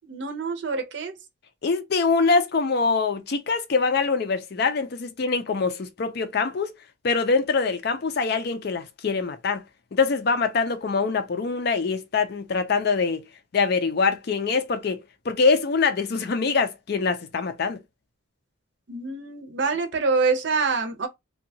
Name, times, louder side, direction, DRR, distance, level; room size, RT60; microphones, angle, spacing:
voice 1, 0.0-1.1 18.9-21.1, right 4 dB, 55° right, 0.6 m, -26 dB
voice 2, 1.6-6.7 7.0-9.6 9.9-13.2 13.5-15.0 15.3-17.8, left 4 dB, 50° left, 0.4 m, -24 dB
2.7 x 2.2 x 2.6 m
head